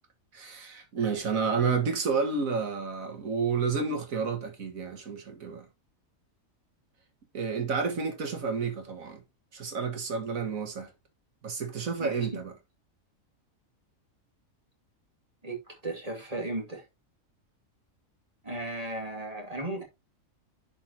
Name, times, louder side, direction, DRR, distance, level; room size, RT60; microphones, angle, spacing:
voice 1, 0.3-5.7 7.3-9.2 9.5-10.9 11.4-12.5, right 5 dB, 75° right, 2.1 m, -30 dB
voice 2, 15.4-16.8 18.4-19.8, right 2 dB, 25° right, 2.4 m, -35 dB
10.5 x 4.9 x 2.8 m
omnidirectional pair, 1.4 m